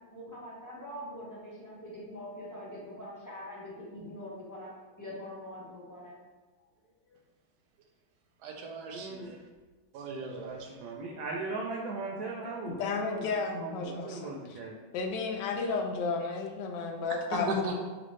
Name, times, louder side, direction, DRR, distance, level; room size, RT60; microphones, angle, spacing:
voice 1, 0.0-4.7 5.0-6.2, left 1 dB, 20° left, -7 dB, 0.5 m, -43 dB
voice 2, 8.4-9.3 9.9-10.7 17.3-17.8, right 2 dB, 70° right, 2 dB, 1.0 m, -36 dB
voice 3, 8.9-9.4 10.4-14.8, right 3 dB, 85° right, -1 dB, 1.3 m, -38 dB
voice 4, 12.7-14.6 14.9-17.8, left 4 dB, 75° left, 3 dB, 1.2 m, -33 dB
5.4 x 2.6 x 3.1 m, 1.3 s
omnidirectional pair, 2.0 m